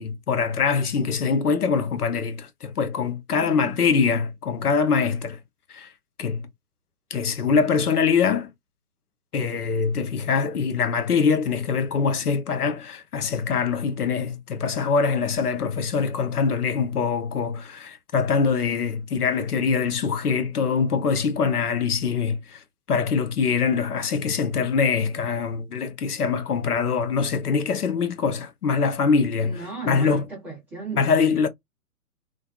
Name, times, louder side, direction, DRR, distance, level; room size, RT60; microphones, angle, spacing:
voice 1, 0.0-5.4 5.7-5.9 6.2-6.5 7.1-8.5 9.3-22.6 22.9-29.5 29.8-30.3 31.0-31.5, left 5 dB, 80° left, 0.7 m, -23 dB
voice 2, 3.4-3.8 29.4-31.5, right 4 dB, 5° right, 0.6 m, -36 dB
2.4 x 2.2 x 2.3 m
figure-of-eight pair, 120°, 45 cm